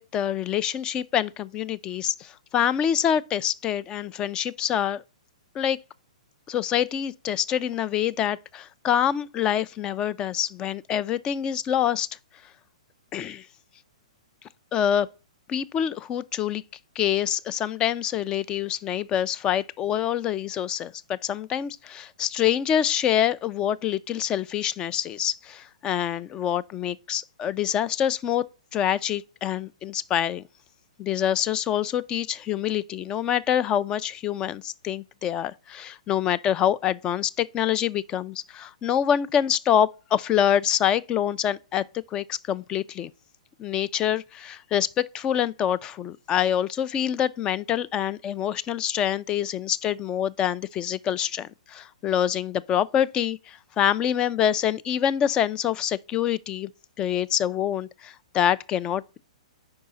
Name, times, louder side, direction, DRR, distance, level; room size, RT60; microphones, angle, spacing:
voice 1, 0.0-5.0 5.6-5.8 6.5-12.1 13.1-13.5 14.7-15.1 15.5-16.6 17.0-28.5 28.7-30.4 31.0-41.8 42.1-43.1 43.6-56.7 57.0-59.2, left 10 dB, 20° left, 0.3 m, -26 dB
5.3 x 4.8 x 3.9 m
hypercardioid pair, 135°, 4 cm